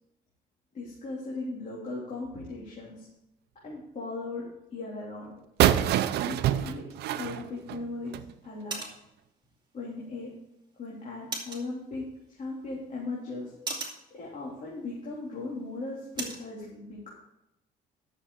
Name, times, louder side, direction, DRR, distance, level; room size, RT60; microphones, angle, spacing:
voice 1, 0.7-3.1 3.6-4.4 4.7-5.3 6.2-6.8 7.2-8.8 9.7-10.3 10.8-13.5 14.1-17.1, left 3 dB, 45° left, -6 dB, 3.2 m, -38 dB
sound 1, 5.6-8.3, right 12 dB, 75° right, 0.6 m, -26 dB
sound 2, 7.0-16.5, right 3 dB, 25° right, 2.5 m, -44 dB
11.0 x 7.0 x 4.7 m, 0.87 s
cardioid pair, 110°, 17 cm